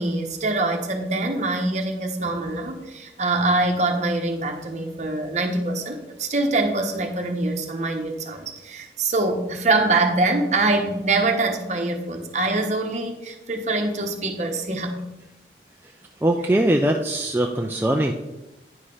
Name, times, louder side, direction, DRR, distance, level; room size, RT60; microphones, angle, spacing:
voice 1, 0.0-14.9, right 2 dB, 40° right, 4 dB, 1.1 m, -24 dB
voice 2, 16.2-18.1, right 1 dB, 10° right, 1 dB, 0.4 m, -21 dB
9.9 x 4.9 x 5.5 m, 0.98 s
head